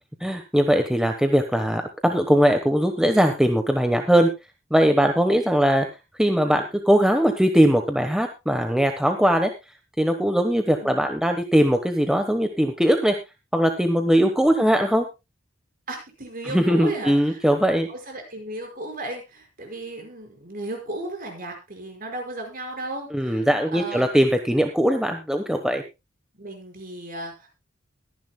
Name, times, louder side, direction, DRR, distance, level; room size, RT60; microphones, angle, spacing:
voice 1, 0.2-4.3 4.7-5.9 6.2-9.5 10.0-13.2 13.5-15.0 16.5-17.9 23.1-25.8, equal, 5° right, 5 dB, 1.1 m, -20 dB
voice 2, 15.9-17.5 17.9-24.1 26.4-27.5, right 2 dB, 45° right, 3 dB, 5.2 m, -35 dB
22.0 x 10.5 x 2.2 m, 0.26 s
head